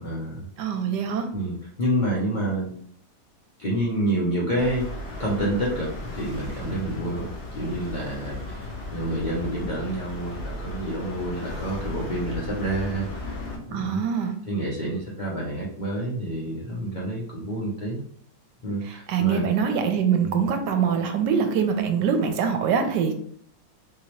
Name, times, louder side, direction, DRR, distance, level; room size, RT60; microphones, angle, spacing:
voice 1, 0.0-0.5 1.3-2.7 3.6-4.9 5.2-13.4 13.7-14.0 14.4-18.0 18.6-19.5 20.2-20.5, right 1 dB, 70° left, -5 dB, 0.4 m, -28 dB
voice 2, 0.6-1.3 13.7-14.3 18.8-23.2, right 7 dB, 80° right, 6 dB, 1.2 m, -24 dB
sound 1, 4.6-13.6, left 2 dB, 50° left, 0.8 m, -35 dB
3.6 x 2.8 x 3.0 m, 0.62 s
omnidirectional pair, 1.9 m